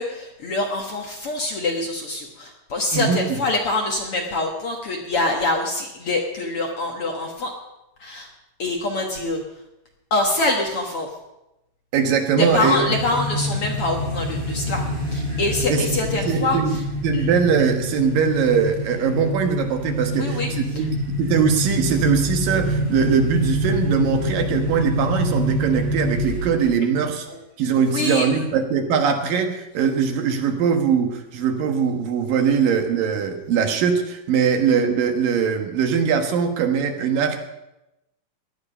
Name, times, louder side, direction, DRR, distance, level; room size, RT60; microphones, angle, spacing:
voice 1, 0.0-7.5 8.0-8.3 8.6-9.4 10.1-11.2 12.4-16.8 17.1-17.3 20.1-20.9 27.3-27.4 27.7-28.5, left 2 dB, 55° left, 1 dB, 1.8 m, -25 dB
voice 2, 11.9-12.8 15.7-15.8 16.2-27.3 27.6-37.5, right 6 dB, 75° right, 5 dB, 3.1 m, -21 dB
sound 1, 12.5-26.8, left 1 dB, 15° right, 7.0 m, -26 dB
17.5 x 11.5 x 5.5 m, 0.92 s
omnidirectional pair, 4.0 m